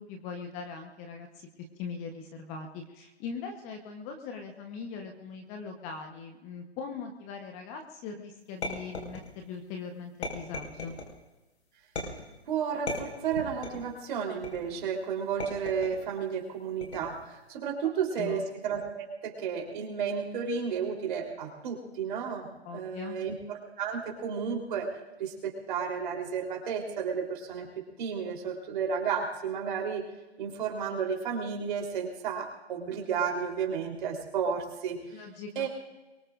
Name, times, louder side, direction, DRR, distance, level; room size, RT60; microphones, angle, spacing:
voice 1, 0.0-1.5 1.8-11.0 18.2-18.4 22.6-23.2 35.1-35.7, left 5 dB, 20° left, 4 dB, 1.1 m, -40 dB
sound 1, 8.6-9.6 10.2-11.1 12.0-12.4 12.9-13.9 14.4-14.8 15.4-16.1 16.8-17.3, left 2 dB, 75° left, 5.3 m, -37 dB
voice 2, 12.5-24.9 25.2-30.1 30.4-35.2 35.6-35.7, right 6 dB, 45° right, 0 dB, 3.7 m, -32 dB
23.0 x 20.5 x 2.6 m, 1.1 s
hypercardioid pair, 145°, 33 cm